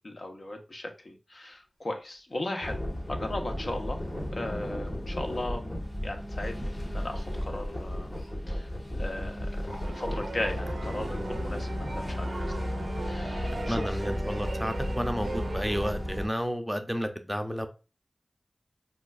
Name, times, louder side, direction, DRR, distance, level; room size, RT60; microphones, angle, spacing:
voice 1, 0.0-2.8 3.1-4.0 4.3-5.7 6.0-8.2 8.5-8.7 9.0-14.1, left 1 dB, 65° left, 0.8 m, -37 dB
Speech, 1.5-1.6 2.0-2.1 2.4-2.5 2.8-3.0 3.4-3.6 3.9-4.1 4.4-4.5 5.3-5.5 6.3-8.3 8.7-8.8 9.2-12.7 13.0-13.2 13.5-15.8 16.4-16.5 16.8-16.9, equal, 90° left, 1.2 m, -52 dB
sound 1, 2.6-16.3, left 1 dB, 50° left, 1.4 m, -34 dB
sound 2, 9.8-15.9, right 3 dB, 85° right, 0.5 m, -39 dB
voice 2, 13.7-17.7, equal, 5° right, 0.5 m, -31 dB
5.1 x 2.3 x 2.3 m
wide cardioid pair, 45°, 0 cm